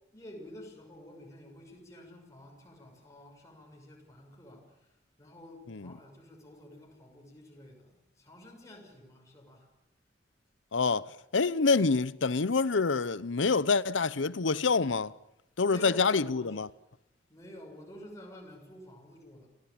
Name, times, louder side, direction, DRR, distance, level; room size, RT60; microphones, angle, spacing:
voice 1, 0.1-9.7 15.6-16.6 17.3-19.5, left 1 dB, 15° left, 6.3 m, -50 dB
voice 2, 10.7-15.1 15.6-16.7, left 4 dB, 85° left, 0.8 m, -27 dB
28.5 x 17.5 x 8.8 m
head